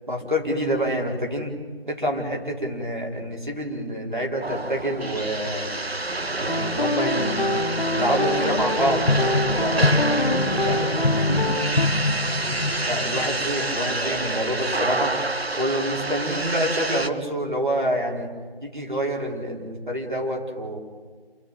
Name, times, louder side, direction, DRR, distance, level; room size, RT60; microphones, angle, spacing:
voice 1, 0.1-1.5 1.8-5.7 6.4-9.0 9.6-9.9 12.9-15.1 15.5-18.3 18.6-20.8, equal, 55° right, 0 dB, 4.6 m, -27 dB
sound 1, 4.4-17.1, right 2 dB, 90° right, 1.4 m, -28 dB
sound 2, 6.5-11.9, left 2 dB, 55° left, 0.7 m, -26 dB
voice 2, 8.1-8.6 9.5-11.4, equal, 25° right, -4 dB, 2.2 m, -31 dB
sound 3, 8.5-13.3, left 2 dB, 85° left, 1.4 m, -25 dB
28.5 x 14.0 x 9.1 m, 1.5 s
figure-of-eight pair, 180°, 30 cm